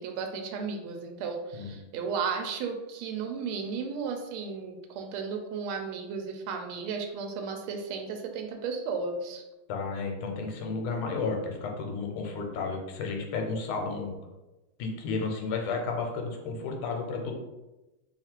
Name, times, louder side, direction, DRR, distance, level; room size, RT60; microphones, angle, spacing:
voice 1, 0.0-9.4, right 5 dB, 90° right, 4 dB, 1.5 m, -34 dB
voice 2, 9.7-14.2 14.8-17.3, left 4 dB, 90° left, 2 dB, 1.5 m, -32 dB
3.5 x 2.4 x 4.3 m, 1.0 s
omnidirectional pair, 2.3 m